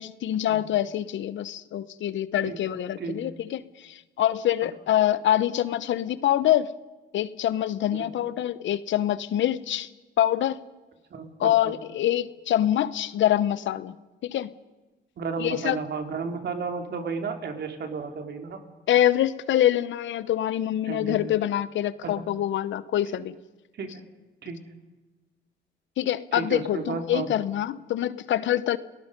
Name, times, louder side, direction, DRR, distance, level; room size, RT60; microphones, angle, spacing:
voice 1, 0.0-6.7 7.1-9.9 10.2-10.6 11.4-13.9 14.2-14.5 15.4-15.8 18.9-23.4 26.0-28.8, left 12 dB, 70° left, 16 dB, 0.9 m, -25 dB
voice 2, 3.0-3.3 7.9-8.1 11.1-11.8 15.2-18.6 20.9-21.3 22.0-22.2 23.8-24.0 24.4-24.6 26.3-27.3, right 5 dB, 60° right, 5 dB, 3.2 m, -33 dB
30.0 x 19.0 x 5.3 m, 1.2 s
cardioid pair, 90°, 20 cm